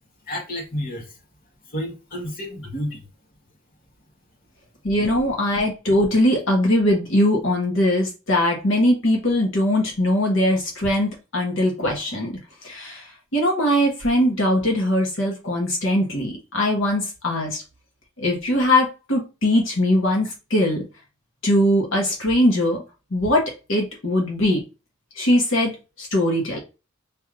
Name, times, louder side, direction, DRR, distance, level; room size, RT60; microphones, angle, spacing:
voice 1, 0.3-1.2 1.7-3.0, equal, 45° left, 1.4 m, -30 dB
voice 2, 4.8-12.3 12.6-17.6 18.2-20.9 21.4-22.8 23.1-24.6 25.1-26.6, left 1 dB, 70° left, 1.2 m, -21 dB
5.1 x 3.3 x 2.5 m
head